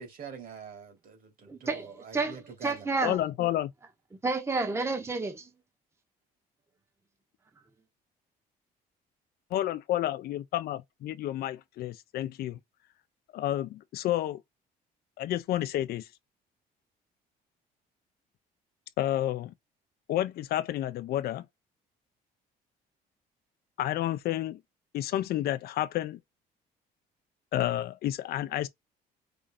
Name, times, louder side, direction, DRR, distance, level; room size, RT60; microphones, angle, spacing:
voice 1, 0.0-2.9, right 6 dB, 55° right, 2.6 m, -45 dB
voice 2, 1.5-3.2 4.2-5.5, right 3 dB, 15° right, 0.9 m, -30 dB
voice 3, 3.0-3.7 9.5-12.6 13.3-14.4 15.2-16.1 19.0-19.5 20.1-21.5 23.8-24.6 24.9-26.2 27.5-28.7, left 13 dB, 65° left, 0.6 m, -30 dB
5.1 x 2.3 x 3.7 m
cardioid pair, 110°, 17 cm